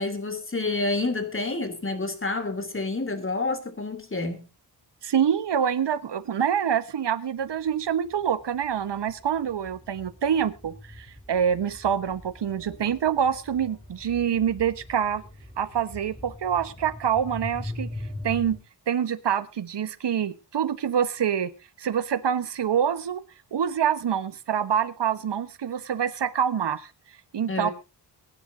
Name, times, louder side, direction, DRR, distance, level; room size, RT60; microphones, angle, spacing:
voice 1, 0.0-4.5 27.5-27.7, left 3 dB, 30° left, 3.1 m, -29 dB
voice 2, 5.0-15.2 15.6-17.9 18.2-18.6 18.9-21.5 21.8-23.2 23.5-26.9 27.3-27.7, right 8 dB, 75° right, 1.3 m, -26 dB
sound 1, 7.4-7.5 7.8-18.6, left 1 dB, 10° left, 5.3 m, -41 dB
23.0 x 10.0 x 2.7 m
wide cardioid pair, 110°, 42 cm